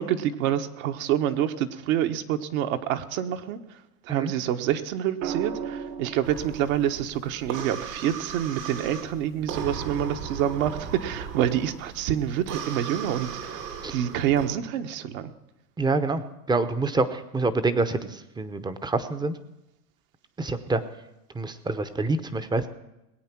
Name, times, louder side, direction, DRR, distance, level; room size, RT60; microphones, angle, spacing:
voice 1, 0.0-3.6 4.0-13.6 13.9-15.3, right 10 dB, 60° right, 7 dB, 1.2 m, -27 dB
sound 1, 5.2-9.3 11.0-11.4, right 7 dB, 45° right, 1.0 m, -38 dB
sound 2, 6.2-14.5, right 6 dB, 85° right, 2.8 m, -37 dB
voice 2, 15.8-16.2 16.5-19.3 20.4-20.8 21.4-22.7, right 3 dB, 10° right, 11 dB, 0.7 m, -26 dB
20.0 x 8.6 x 6.0 m, 0.93 s
supercardioid pair, 120°, 46 cm